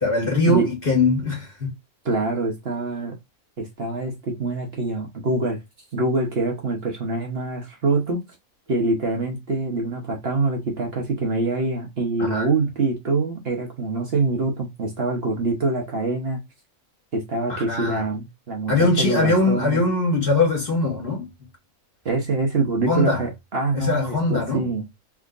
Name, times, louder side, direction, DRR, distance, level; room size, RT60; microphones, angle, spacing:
voice 1, 0.0-1.7 12.2-12.5 17.5-18.0 18.7-21.3 22.9-23.2 23.7-24.7, left 2 dB, 40° left, 1.7 m, -21 dB
voice 2, 2.0-3.1 3.6-5.6 5.9-8.2 8.7-16.4 17.1-19.8 22.0-24.9, right 3 dB, 50° right, 1.0 m, -25 dB
3.5 x 2.8 x 2.4 m
omnidirectional pair, 1.4 m